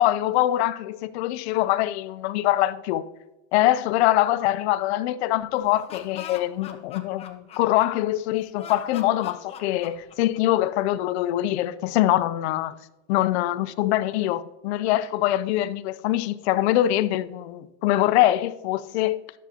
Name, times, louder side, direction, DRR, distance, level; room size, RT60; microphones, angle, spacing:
voice 1, 0.0-3.0 3.5-12.8 13.1-19.2, left 14 dB, 65° left, 0.6 m, -23 dB
Laughter, 5.6-8.1 8.6-10.6, left 8 dB, 20° left, 0.6 m, -41 dB
11.5 x 7.2 x 2.8 m
supercardioid pair, 165°, 36 cm